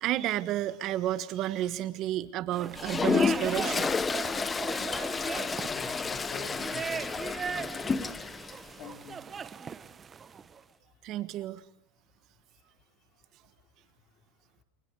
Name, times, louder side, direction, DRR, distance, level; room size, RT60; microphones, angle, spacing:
voice 1, 0.0-3.9 11.0-11.6, right 13 dB, 45° right, 12 dB, 1.3 m, -31 dB
sound 1, 2.5-10.6, right 6 dB, 20° right, 1.0 m, -39 dB
Toilet flush, 2.8-8.6, left 5 dB, 15° left, 0.9 m, -30 dB
voice 2, 5.7-7.3 8.8-9.2, left 6 dB, 45° left, 4 dB, 4.6 m, -46 dB
29.0 x 28.5 x 4.7 m, 0.64 s
supercardioid pair, 125°, 0 cm